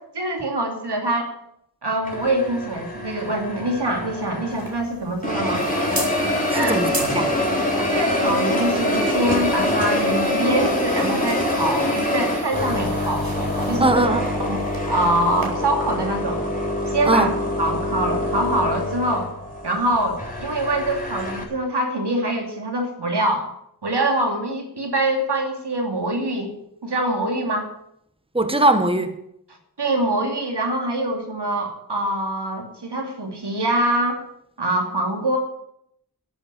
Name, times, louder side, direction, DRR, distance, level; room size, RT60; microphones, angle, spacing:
voice 1, 0.0-1.3 1.8-5.9 6.5-6.8 7.8-13.3 13.7-14.0 14.4-14.6 14.9-16.4 16.9-17.3 17.6-19.3 19.6-23.5 23.8-26.5 26.8-27.7 29.8-34.2 34.6-35.4, right 1 dB, 90° right, 3 dB, 2.8 m, -24 dB
sound 1, 2.0-4.8 5.2-21.4, left 1 dB, 20° left, 4.1 m, -25 dB
sound 2, 4.5-15.5, right 2 dB, 60° right, 4.1 m, -37 dB
voice 2, 6.5-7.3 13.8-14.2 17.0-17.3 28.3-29.2, right 2 dB, 15° right, 9 dB, 1.4 m, -20 dB
13.0 x 8.4 x 9.9 m, 0.74 s
wide cardioid pair, 55°, 40 cm